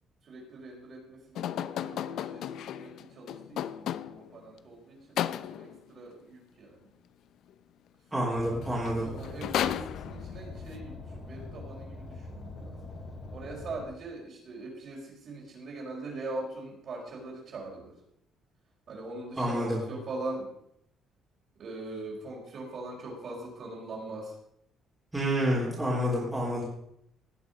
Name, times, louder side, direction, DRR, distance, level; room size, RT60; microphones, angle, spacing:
voice 1, 0.2-2.5 2.8-6.9 8.6-12.8 13.3-17.9 18.9-20.5 21.6-24.4, right 2 dB, 45° right, -2 dB, 5.1 m, -41 dB
sound 1, 1.4-4.4 5.2-5.8 8.5-8.6 8.8-10.4, left 11 dB, 65° left, 0.6 m, -34 dB
voice 2, 8.1-9.1 19.4-19.8 25.1-26.6, equal, 10° right, -5 dB, 3.4 m, -28 dB
Car, 8.3-13.8, left 3 dB, 40° left, 3.3 m, -43 dB
17.0 x 8.7 x 5.3 m, 0.76 s
cardioid pair, 155°, 0 cm